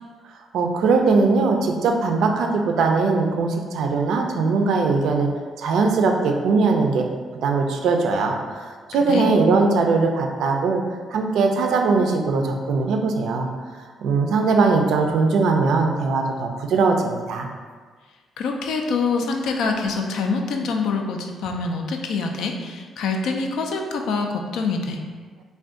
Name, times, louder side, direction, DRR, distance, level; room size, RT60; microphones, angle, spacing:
voice 1, 0.5-5.3 5.6-7.1 7.4-13.5 14.0-17.5, right 4 dB, 80° right, 3 dB, 0.3 m, -20 dB
voice 2, 18.4-25.0, left 4 dB, 80° left, 3 dB, 0.3 m, -25 dB
2.5 x 2.2 x 3.6 m, 1.5 s
cardioid pair, 90°, 0 cm